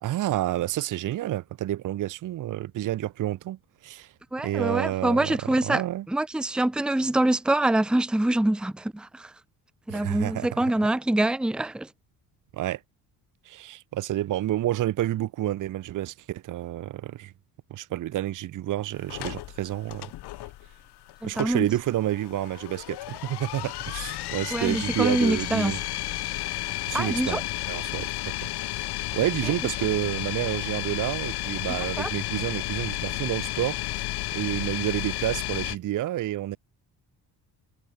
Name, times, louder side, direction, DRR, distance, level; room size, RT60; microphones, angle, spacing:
voice 1, 0.0-4.1 4.4-6.1 9.9-10.6 12.5-12.8 13.4-17.3 17.7-20.1 21.2-25.8 26.9-28.4 28.7-28.9 29.1-34.0 34.3-36.6, right 14 dB, 55° right, 1.1 m, -29 dB
voice 2, 4.3-5.8 6.1-9.3 9.9-11.9 21.2-21.7 24.5-25.7 26.9-27.4 32.0-32.1, right 1 dB, ahead, 0.9 m, -25 dB
sound 1, 19.1-35.8, left 16 dB, 90° left, 2.5 m, -32 dB
cardioid pair, 175°, 38 cm